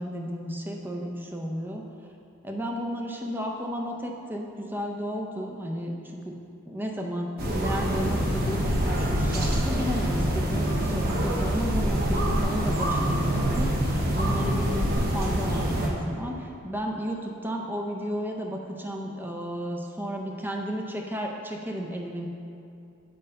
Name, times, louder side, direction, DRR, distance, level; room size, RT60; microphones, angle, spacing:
voice 1, 0.0-1.8 2.4-6.4 6.7-22.3, equal, 10° right, 1 dB, 0.6 m, -33 dB
sound 1, 7.4-15.9, equal, 45° right, 1.1 m, -25 dB
7.8 x 5.4 x 5.3 m, 2.6 s
head